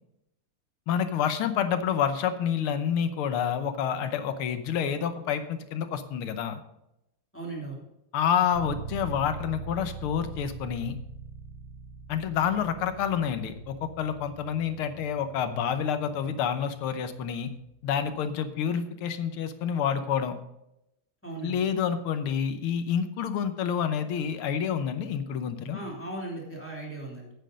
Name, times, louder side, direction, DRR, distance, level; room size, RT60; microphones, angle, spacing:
voice 1, 0.9-6.6 8.1-11.0 12.1-17.5 17.8-20.4 21.4-25.8, left 8 dB, 90° left, 10 dB, 1.8 m, -28 dB
voice 2, 7.3-7.8 21.2-21.6 25.7-27.3, right 2 dB, 5° left, -4 dB, 2.7 m, -37 dB
sound 1, 8.5-18.2, right 6 dB, 55° left, 2.1 m, -43 dB
9.2 x 8.9 x 5.2 m, 0.85 s
omnidirectional pair, 2.3 m